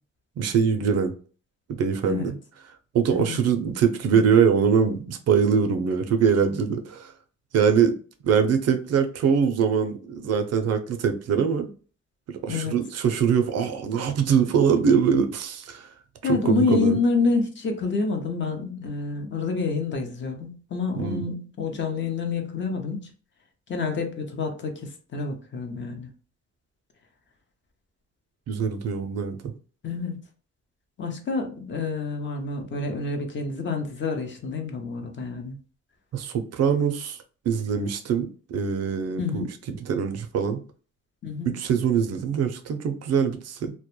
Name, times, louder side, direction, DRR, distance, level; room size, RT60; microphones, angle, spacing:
voice 1, 0.4-1.1 1.8-2.3 2.9-7.1 7.5-8.0 8.2-11.7 12.3-15.9 16.3-17.0 21.0-21.2 28.5-29.5 36.1-37.2 37.5-40.6 41.5-43.7, right 7 dB, 55° right, 7 dB, 0.5 m, -23 dB
voice 2, 2.0-2.3 3.1-3.4 12.5-12.8 16.2-23.1 23.7-26.1 29.8-30.2 31.0-35.6 39.2-39.4 41.2-41.6, left 4 dB, 40° left, 4 dB, 0.6 m, -28 dB
2.2 x 2.1 x 3.0 m, 0.39 s
cardioid pair, 90°, 30 cm